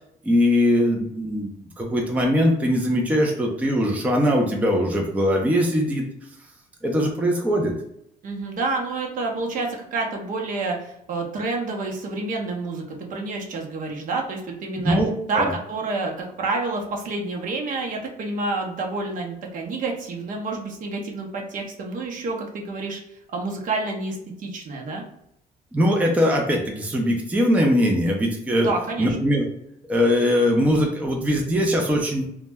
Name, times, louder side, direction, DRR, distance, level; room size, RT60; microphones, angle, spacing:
voice 1, 0.2-6.0 6.8-7.7 14.8-15.5 25.7-28.7 29.0-29.4 29.9-32.3, equal, 10° right, 0 dB, 0.4 m, -21 dB
voice 2, 8.2-12.8 13.1-15.0 15.3-23.0 23.3-25.0 28.6-29.2, right 3 dB, 50° right, 1 dB, 0.7 m, -28 dB
2.1 x 2.0 x 3.3 m, 0.74 s
cardioid pair, 110°, 17 cm